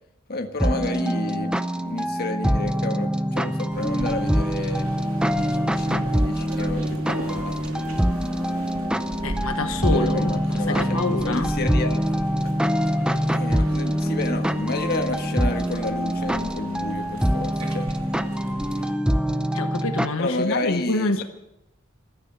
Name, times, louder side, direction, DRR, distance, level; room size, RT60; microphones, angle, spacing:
voice 1, 0.3-4.9 5.2-7.6 9.9-12.6 13.3-17.9 20.2-21.2, left 2 dB, 50° left, 5 dB, 1.5 m, -31 dB
sound 1, 0.6-20.1, equal, 5° right, 0.6 m, -24 dB
sound 2, 3.7-18.9, right 1 dB, 90° right, 2.7 m, -37 dB
voice 2, 9.2-11.5 19.5-21.2, left 2 dB, 75° left, 7 dB, 1.2 m, -27 dB
14.5 x 13.5 x 6.8 m, 0.86 s
head